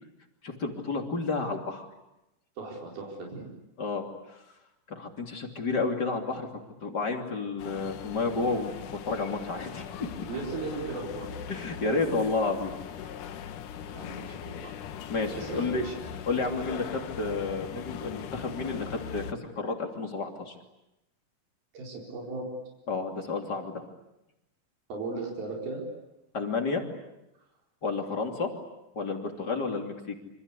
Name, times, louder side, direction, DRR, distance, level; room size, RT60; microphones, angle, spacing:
voice 1, 0.4-1.9 3.8-4.0 4.3-4.4 4.9-6.5 6.8-9.9 10.2-10.3 11.5-12.7 13.0-13.1 15.1-15.8 16.2-20.5 22.9-23.8 26.3-26.8 27.8-28.5 28.9-29.9, left 3 dB, 30° left, 3 dB, 3.1 m, -31 dB
voice 2, 2.6-3.5 10.3-11.3 13.9-14.7 15.3-15.9 21.7-22.5 24.9-25.8, right 3 dB, 80° right, -1 dB, 6.2 m, -37 dB
sound 1, 7.6-19.3, left 9 dB, 65° left, 2.6 m, -40 dB
27.0 x 26.0 x 8.4 m, 0.91 s
omnidirectional pair, 4.2 m